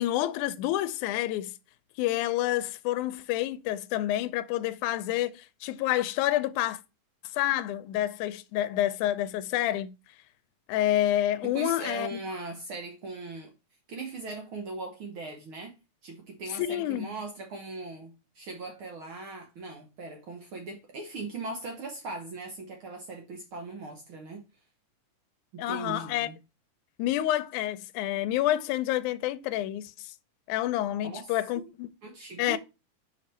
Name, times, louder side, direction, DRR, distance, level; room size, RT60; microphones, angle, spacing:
voice 1, 0.0-1.6 2.0-6.8 7.3-10.0 10.7-12.2 16.6-17.1 25.6-26.3 27.0-30.1 30.5-31.9 32.4-32.6, left 13 dB, 80° left, 1.9 m, -28 dB
voice 2, 11.4-13.5 13.9-15.7 16.0-24.4 25.5-26.4 31.0-31.7 32.0-32.6, right 3 dB, 75° right, 1.2 m, -39 dB
5.2 x 5.1 x 4.2 m
omnidirectional pair, 3.6 m